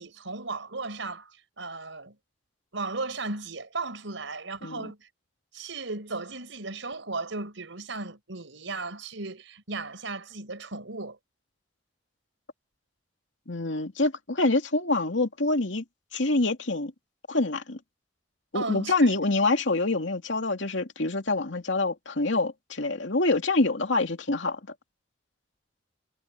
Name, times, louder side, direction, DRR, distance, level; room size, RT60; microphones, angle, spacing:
voice 1, 0.0-2.2 2.7-5.1 5.5-11.2 18.5-19.1, right 3 dB, 85° right, 4.4 m, -36 dB
voice 2, 13.5-15.8 16.1-16.9 17.3-17.8 18.5-24.6, left 2 dB, 80° left, 2.6 m, -26 dB
head